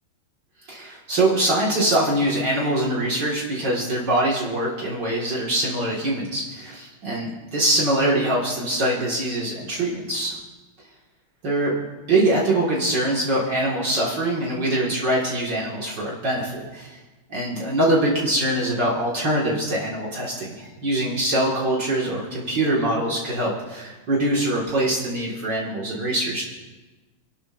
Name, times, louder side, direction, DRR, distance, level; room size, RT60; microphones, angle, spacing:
voice 1, 0.7-10.4 11.4-11.7 12.1-17.0 17.3-26.4, right 1 dB, 55° right, -4 dB, 2.5 m, -23 dB
28.5 x 11.5 x 2.6 m, 1.2 s
omnidirectional pair, 2.3 m